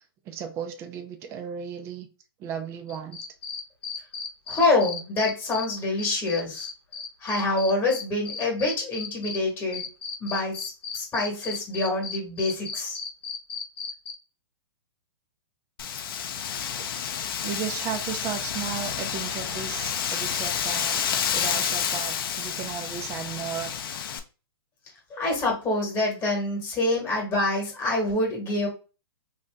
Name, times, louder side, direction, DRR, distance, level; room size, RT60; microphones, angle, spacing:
voice 1, 0.3-2.1 2.4-3.2 17.4-21.0 21.3-23.7, right 8 dB, 20° right, 0.4 m, -34 dB
sound 1, 2.9-5.6 6.0-9.4 9.7-14.1, left 5 dB, 90° left, 1.1 m, -35 dB
voice 2, 4.5-6.7 7.2-9.8 10.2-13.0 25.1-28.7, left 2 dB, 15° left, 1.2 m, -26 dB
Wind, 15.8-24.2, left 8 dB, 60° left, 0.5 m, -29 dB
2.7 x 2.6 x 3.3 m
hypercardioid pair, 145°, 13 cm